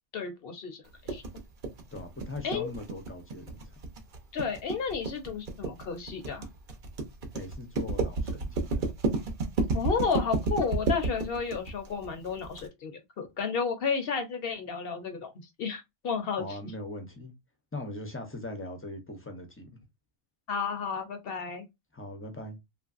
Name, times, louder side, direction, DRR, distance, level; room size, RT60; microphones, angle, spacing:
voice 1, 0.1-1.2 2.4-2.7 4.3-6.4 9.7-15.3 15.6-16.4 20.5-21.7, left 5 dB, 60° left, 0.8 m, -32 dB
sound 1, 1.1-12.6, right 3 dB, 50° right, 0.8 m, -31 dB
voice 2, 1.9-3.8 7.3-8.9 16.4-17.3 17.7-19.7 21.9-22.6, left 2 dB, 15° left, 0.4 m, -40 dB
3.0 x 2.5 x 2.4 m
omnidirectional pair, 1.2 m